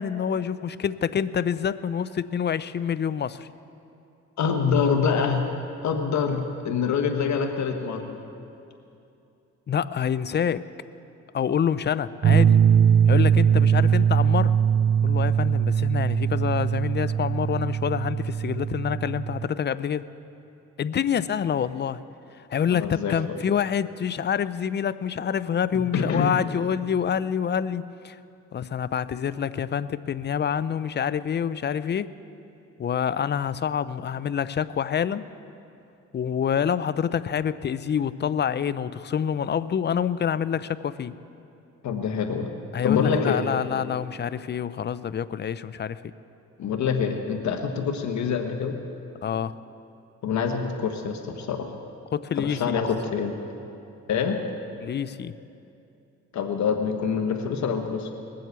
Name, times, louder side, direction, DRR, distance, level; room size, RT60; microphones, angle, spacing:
voice 1, 0.0-3.5 9.7-10.7 11.3-12.6 13.1-14.6 15.0-20.0 20.8-22.0 22.4-28.2 28.5-32.1 32.8-35.3 36.1-41.1 42.7-46.0 49.2-49.5 52.1-52.8 54.8-55.3, left 8 dB, 35° left, 16 dB, 0.5 m, -27 dB
voice 2, 4.4-5.5 5.8-8.2 22.7-23.1 25.9-26.4 41.8-42.5 42.8-43.4 46.6-48.8 50.2-51.8 52.4-53.3 54.1-54.4 56.3-58.1, left 6 dB, 65° left, 5 dB, 1.3 m, -25 dB
sound 1, 12.2-19.5, right 8 dB, 40° right, 0.4 m, -21 dB
20.0 x 7.7 x 8.2 m, 2.7 s
cardioid pair, 90°, 30 cm